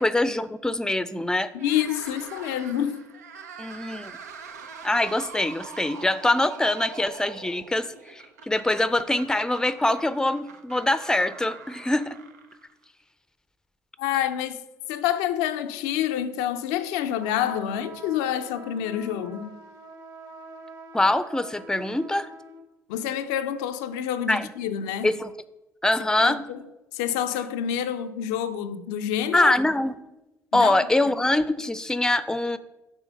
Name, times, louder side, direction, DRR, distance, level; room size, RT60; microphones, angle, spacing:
voice 1, 0.0-1.5 3.6-4.1 4.8-12.2 20.9-22.3 24.3-24.5 25.0-25.3 25.8-26.4 29.3-29.9 30.5-32.6, left 2 dB, 5° left, 0.5 m, -24 dB
voice 2, 1.5-3.1 14.0-14.6 14.9-19.6 22.9-25.1 26.2-26.6 26.9-29.5 30.5-30.7, left 10 dB, 75° left, 0.4 m, -28 dB
sound 1, 1.5-12.8, right 6 dB, 85° right, 0.5 m, -43 dB
sound 2, 17.2-22.6, right 2 dB, 45° right, 1.6 m, -44 dB
6.3 x 4.2 x 5.3 m
hypercardioid pair, 50°, 9 cm